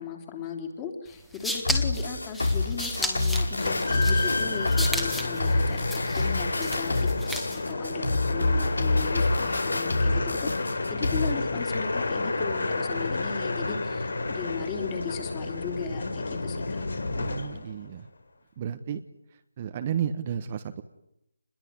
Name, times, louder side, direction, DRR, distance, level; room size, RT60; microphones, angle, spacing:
voice 1, 0.0-7.4 7.7-16.8, left 6 dB, 15° left, 4 dB, 3.3 m, -37 dB
sound 1, 1.1-7.7, left 1 dB, ahead, 2.0 m, -34 dB
sound 2, 1.7-11.3, left 2 dB, 90° left, 5.4 m, -27 dB
sound 3, 3.6-17.8, left 3 dB, 70° left, 4.4 m, -30 dB
voice 2, 17.1-18.1 18.6-19.0 19.3-20.8, right 8 dB, 25° right, 7 dB, 1.3 m, -32 dB
27.5 x 21.5 x 9.6 m, 0.81 s
figure-of-eight pair, 160°, 0 cm